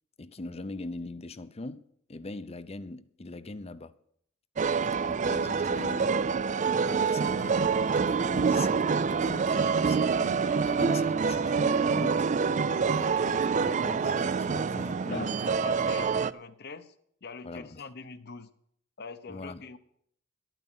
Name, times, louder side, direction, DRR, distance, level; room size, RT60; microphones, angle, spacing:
voice 1, 0.2-1.8 2.1-3.9 5.0-6.2 6.8-12.3 12.9-15.4 15.8-16.0 17.4-17.8 19.3-19.6, left 2 dB, 30° left, 0.6 m, -41 dB
sound 1, 4.6-16.3, right 5 dB, 40° right, 0.4 m, -26 dB
voice 2, 15.1-16.9 17.2-18.5 19.0-19.8, left 5 dB, 55° left, 0.9 m, -43 dB
12.5 x 9.0 x 6.2 m
head